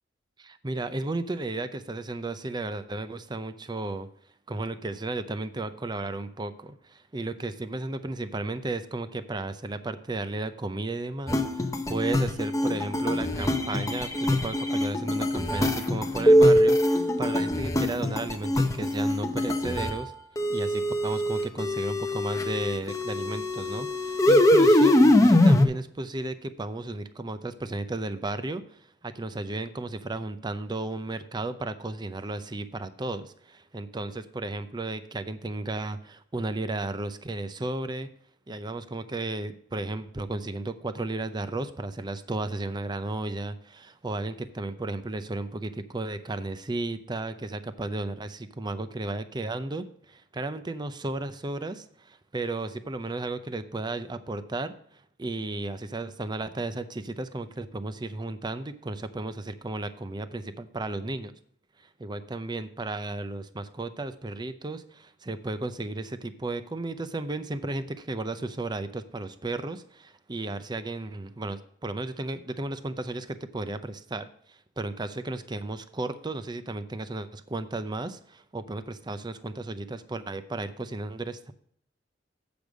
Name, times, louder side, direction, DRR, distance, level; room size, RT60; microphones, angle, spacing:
voice 1, 0.4-4.1 4.5-20.1 20.5-28.6 29.0-38.1 38.5-54.7 55.2-61.3 62.0-81.5, right 2 dB, 25° right, 11 dB, 0.6 m, -34 dB
sound 1, 11.3-19.9 20.4-25.7, left 1 dB, 20° left, 0.8 m, -23 dB
8.1 x 5.2 x 6.1 m, 0.65 s
head